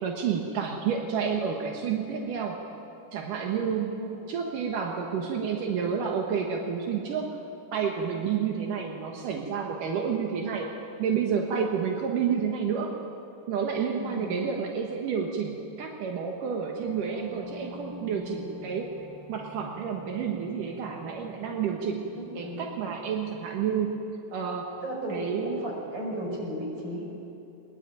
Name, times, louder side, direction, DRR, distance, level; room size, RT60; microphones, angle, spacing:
voice 1, 0.0-2.6 3.1-4.0 4.3-7.4 7.7-10.7 11.0-12.9 13.5-18.9 19.3-22.0 22.4-24.0 24.3-24.6 25.1-25.7, right 6 dB, 80° right, 1 dB, 3.1 m, -30 dB
voice 2, 4.0-4.3 14.0-14.4 22.2-22.6 24.8-27.0, equal, 35° right, -1 dB, 6.4 m, -35 dB
sound 1, 16.8-24.0, left 3 dB, 15° left, 7.5 m, -48 dB
22.5 x 21.5 x 9.2 m, 2.9 s
omnidirectional pair, 3.7 m